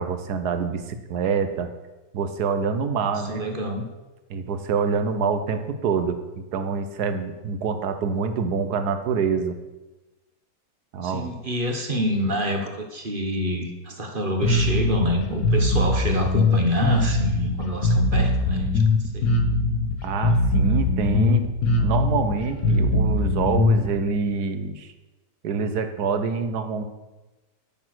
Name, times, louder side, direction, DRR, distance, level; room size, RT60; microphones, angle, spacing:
voice 1, 0.0-1.7 2.1-3.4 4.3-9.6 10.9-11.3 20.0-21.4 21.8-24.9 25.4-26.8, right 5 dB, 65° right, 9 dB, 1.4 m, -26 dB
voice 2, 3.0-3.9 11.0-19.3, equal, 35° right, 5 dB, 1.0 m, -27 dB
Bass guitar, 14.4-23.9, left 2 dB, 55° left, 1.4 m, -21 dB
12.0 x 6.3 x 6.4 m, 1.1 s
omnidirectional pair, 1.9 m